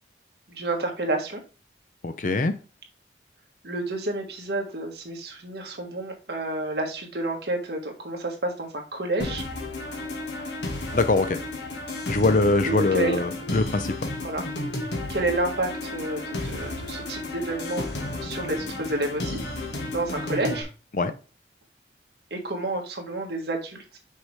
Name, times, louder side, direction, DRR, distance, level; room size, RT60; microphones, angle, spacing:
voice 1, 0.5-1.4 3.6-9.4 12.7-13.2 14.2-14.4 15.1-19.4 19.9-20.7 22.3-24.0, right 2 dB, 65° right, 1.5 m, -30 dB
voice 2, 2.0-2.5 10.9-11.4 12.1-14.1 20.9-21.1, left 3 dB, 45° left, 0.6 m, -23 dB
sound 1, 9.2-20.6, left 2 dB, 80° left, 1.6 m, -33 dB
6.3 x 4.8 x 3.3 m
head